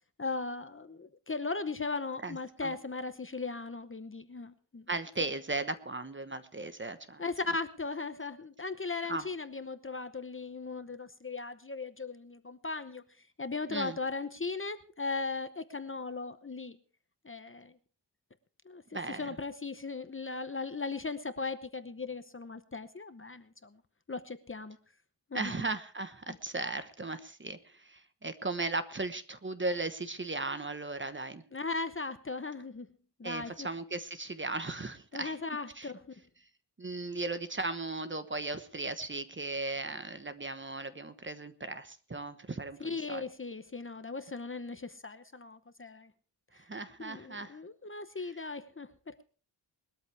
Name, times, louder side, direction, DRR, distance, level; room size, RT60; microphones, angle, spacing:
voice 1, 0.2-4.9 7.2-13.0 13.4-16.8 17.2-17.7 18.6-18.8 19.2-23.8 24.1-24.8 25.3-25.5 26.3-26.4 31.5-32.9 33.2-33.7 35.1-36.0 42.8-46.1 46.5-46.6 47.0-49.2, left 3 dB, 30° left, 10 dB, 0.9 m, -38 dB
voice 2, 2.2-2.7 4.9-7.2 9.1-9.3 13.7-14.0 18.9-19.3 25.3-31.4 33.2-35.4 35.7-35.9 36.8-43.2 46.7-47.6, right 3 dB, 25° right, 10 dB, 1.1 m, -37 dB
20.5 x 13.0 x 3.4 m, 0.39 s
wide cardioid pair, 125°, 44 cm